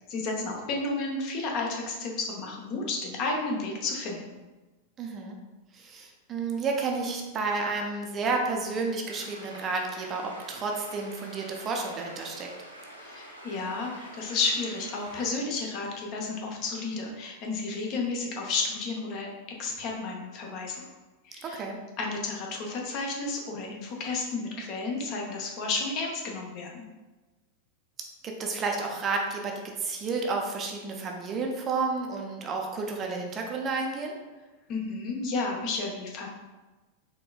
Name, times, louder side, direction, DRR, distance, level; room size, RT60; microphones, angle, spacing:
voice 1, 0.1-4.4 13.0-19.3 19.6-20.9 21.2-21.6 22.0-26.9 34.7-36.3, left 3 dB, 40° left, 0 dB, 0.7 m, -32 dB
voice 2, 5.0-5.4 5.7-12.5 21.4-21.8 28.2-34.1, right 4 dB, 30° right, 1 dB, 0.5 m, -31 dB
sound 1, 9.1-15.3, right 1 dB, 85° right, 0.6 m, -46 dB
4.2 x 3.0 x 2.3 m, 1.2 s
figure-of-eight pair, 90°, 0 cm